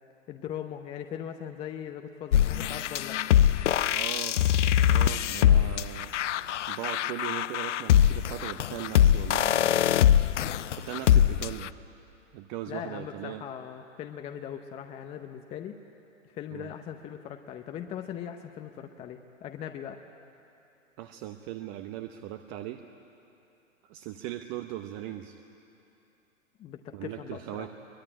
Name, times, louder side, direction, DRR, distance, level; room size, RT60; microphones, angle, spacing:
voice 1, 0.3-3.2 12.7-15.8 16.2-20.0 26.6-27.7, left 9 dB, 15° left, 6 dB, 0.7 m, -40 dB
sound 1, 2.3-11.7, left 11 dB, 65° left, 0.7 m, -23 dB
voice 2, 3.8-4.4 4.8-6.2 6.7-9.9 10.8-11.7 12.3-13.4 16.5-16.7 21.0-22.8 23.8-25.4 26.9-27.7, right 13 dB, 30° right, 6 dB, 0.8 m, -39 dB
23.0 x 20.5 x 9.9 m, 2.8 s
hypercardioid pair, 130°, 39 cm